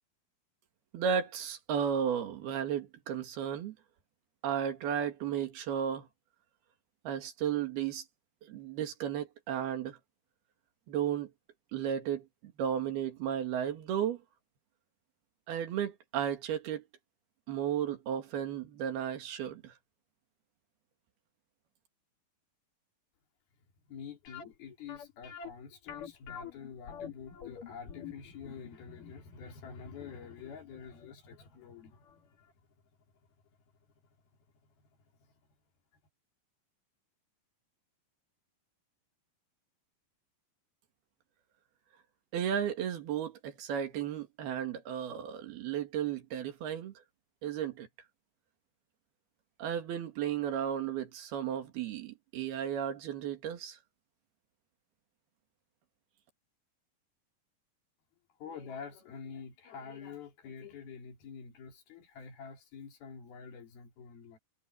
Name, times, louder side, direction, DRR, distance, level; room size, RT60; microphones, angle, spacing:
voice 1, 0.9-3.8 4.4-6.1 7.1-8.1 8.4-10.0 10.9-11.3 11.7-14.2 15.5-16.8 17.5-19.8 42.3-46.9 47.4-47.9 49.6-53.8, right 9 dB, 85° right, 4.1 m, -34 dB
voice 2, 23.9-32.0 58.4-64.4, left 6 dB, 80° left, 5.0 m, -47 dB
sound 1, 24.3-31.1 31.4-31.5 32.1-32.2 32.5-32.6, left 8 dB, 60° left, 4.1 m, -46 dB
omnidirectional pair, 4.3 m